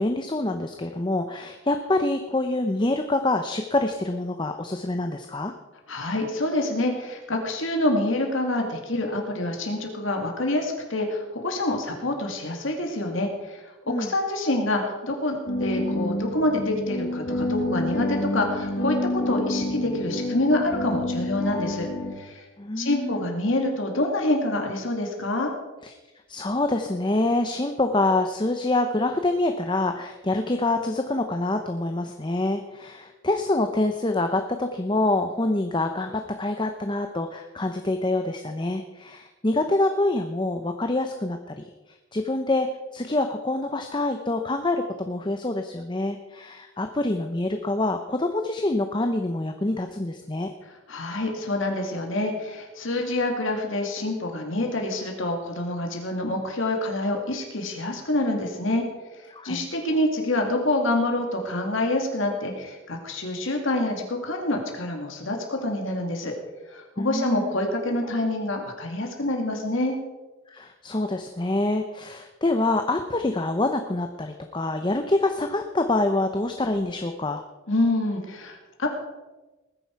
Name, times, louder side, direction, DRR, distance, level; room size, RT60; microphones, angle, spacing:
voice 1, 0.0-5.5 13.9-14.1 22.6-23.2 25.8-25.9 26.3-41.6 42.1-42.7 42.9-50.5 59.3-59.7 67.0-67.6 70.5-77.4, left 2 dB, 20° left, 6 dB, 0.7 m, -26 dB
voice 2, 5.9-21.9 22.2-22.4 22.8-25.5 50.9-58.8 59.1-66.3 66.7-70.0 77.7-78.9, left 1 dB, 65° left, 2 dB, 2.4 m, -27 dB
sound 1, 15.5-22.1, left 1 dB, 45° left, 4.7 m, -28 dB
19.5 x 10.0 x 4.6 m, 1.1 s
head